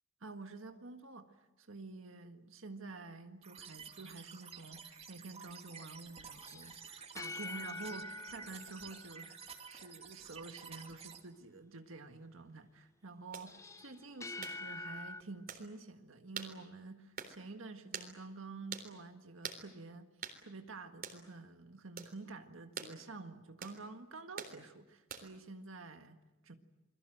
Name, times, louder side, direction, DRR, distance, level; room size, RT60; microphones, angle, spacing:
voice 1, 0.2-20.1 20.4-26.5, right 3 dB, 85° right, 6 dB, 1.7 m, -49 dB
sound 1, 3.4-11.2, right 6 dB, 30° right, 2.5 m, -52 dB
sound 2, 6.4-9.9 13.5-15.2, left 3 dB, 15° left, 0.9 m, -46 dB
sound 3, 13.3-13.5 14.4-14.6 15.5-15.6 16.4-16.5 17.2-17.4 17.9-18.1 18.7-18.9 19.4-19.6 20.2-20.4 21.0-21.2 22.0-22.1 22.8-22.9 23.6-23.8 24.4-24.6 25.1-25.4, right 6 dB, 50° right, 3.7 m, -44 dB
28.5 x 22.5 x 7.8 m, 1.0 s
head